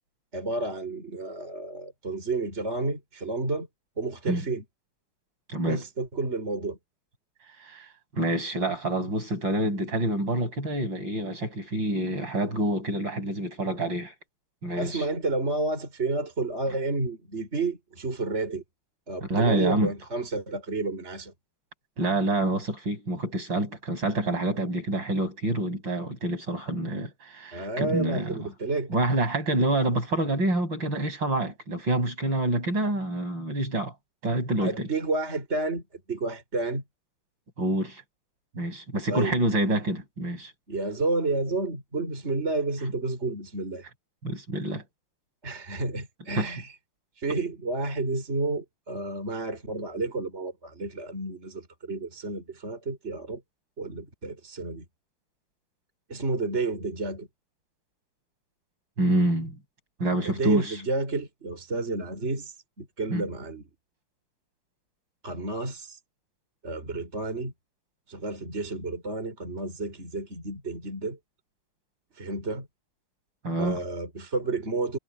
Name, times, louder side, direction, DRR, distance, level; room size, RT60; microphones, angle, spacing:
voice 1, 0.3-3.7 4.0-4.6 5.6-6.8 14.8-18.6 19.1-21.3 27.5-28.9 34.6-35.8 36.1-36.8 39.1-39.4 40.7-43.9 45.4-46.8 47.2-53.4 53.8-54.8 56.1-57.3 60.2-63.6 65.2-66.0 66.6-67.5 68.1-71.2 72.2-72.7 73.6-75.0, right 3 dB, 30° right, 4.6 m, -31 dB
voice 2, 5.5-5.8 7.6-7.9 8.1-14.1 14.6-15.0 19.2-19.9 22.0-28.5 28.9-33.9 34.2-34.9 37.6-38.0 38.5-40.5 44.2-44.8 46.4-46.5 59.0-59.6 60.0-60.7 63.1-63.3 73.4-73.8, right 1 dB, 55° right, 8.2 m, -27 dB
omnidirectional pair, 2.4 m